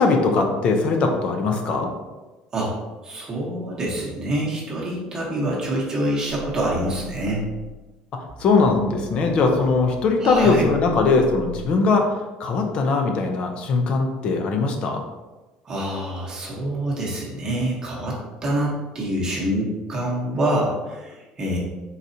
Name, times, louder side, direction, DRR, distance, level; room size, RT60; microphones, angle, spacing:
voice 1, 0.0-1.9 8.1-12.1 12.4-15.0, left 4 dB, 40° left, 4 dB, 0.6 m, -20 dB
voice 2, 3.0-7.4 10.2-10.7 15.6-21.6, right 1 dB, 25° right, -4 dB, 1.0 m, -26 dB
sound 1, 8.3-11.8, right 4 dB, 40° right, 1.1 m, -39 dB
4.7 x 4.0 x 2.7 m, 1.2 s
cardioid pair, 165°, 3 cm